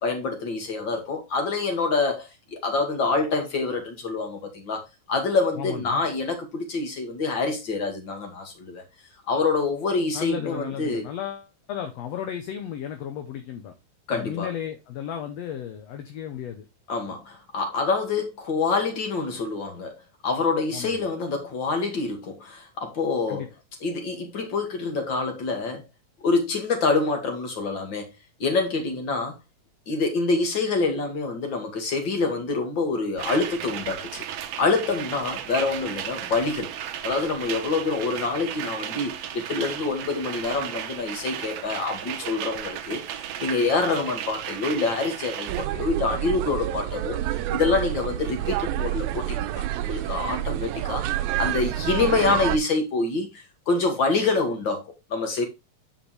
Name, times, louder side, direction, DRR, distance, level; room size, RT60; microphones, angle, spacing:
voice 1, 0.0-8.8 9.3-11.0 14.1-14.5 16.9-23.5 23.8-25.9 26.2-28.1 28.4-29.3 29.9-34.2 34.6-36.7 37.0-54.9 55.1-55.4, left 3 dB, 40° left, 2.6 m, -26 dB
voice 2, 5.6-6.0 10.1-13.7 14.1-16.7 20.7-21.0 23.3-23.5, left 9 dB, 65° left, 2.0 m, -34 dB
sound 1, 33.2-45.7, right 10 dB, 70° right, 2.0 m, -35 dB
sound 2, 45.5-52.6, right 13 dB, 85° right, 2.1 m, -28 dB
10.0 x 5.5 x 3.3 m
omnidirectional pair, 3.5 m